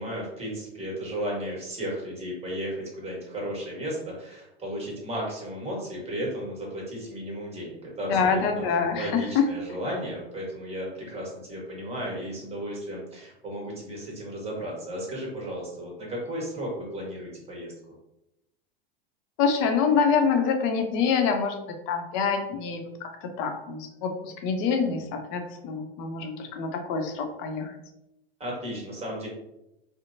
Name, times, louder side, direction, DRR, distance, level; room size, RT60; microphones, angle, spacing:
voice 1, 0.0-8.6 8.9-17.7 28.4-29.3, equal, 20° right, -3 dB, 1.3 m, -34 dB
voice 2, 8.1-9.5 19.4-27.7, left 6 dB, 55° left, 5 dB, 0.6 m, -26 dB
2.8 x 2.0 x 2.6 m, 0.89 s
hypercardioid pair, 90°, 31 cm